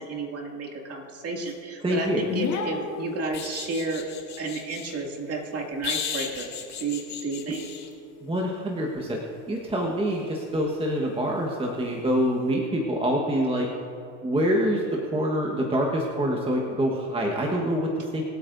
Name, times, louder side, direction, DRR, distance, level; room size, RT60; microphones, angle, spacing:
voice 1, 0.0-4.0 4.4-6.5 6.8-7.6, right 3 dB, 35° right, 0 dB, 2.4 m, -32 dB
voice 2, 1.8-2.3 7.5-7.6 8.2-9.2 9.5-13.7 14.2-18.2, equal, 15° right, -1 dB, 1.3 m, -26 dB
sound 1, 2.3-4.9 5.8-7.9 10.5-10.7, left 7 dB, 40° left, 2.2 m, -33 dB
23.5 x 8.6 x 2.7 m, 2.7 s
supercardioid pair, 100°, 42 cm